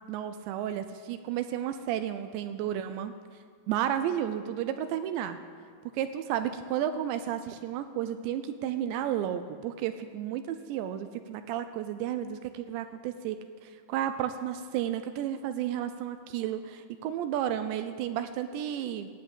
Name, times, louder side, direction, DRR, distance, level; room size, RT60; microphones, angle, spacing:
voice 1, 0.1-3.1 3.7-5.4 5.9-13.4 13.6-19.1, right 10 dB, 80° right, 10 dB, 2.8 m, -32 dB
16.0 x 7.9 x 8.8 m, 2.1 s
omnidirectional pair, 5.2 m